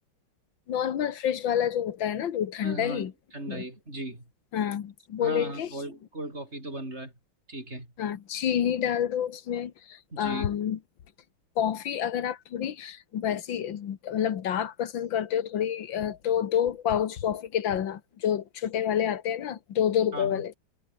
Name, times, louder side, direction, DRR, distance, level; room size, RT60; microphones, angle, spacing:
voice 1, 0.7-3.1 3.5-3.6 4.5-5.7 8.0-10.8 11.6-20.5, left 9 dB, 65° left, 2.1 m, -28 dB
voice 2, 2.6-4.2 5.2-7.1 7.5-7.9 10.1-10.5 20.1-20.4, right 1 dB, 30° right, 8.4 m, -37 dB
omnidirectional pair, 2.3 m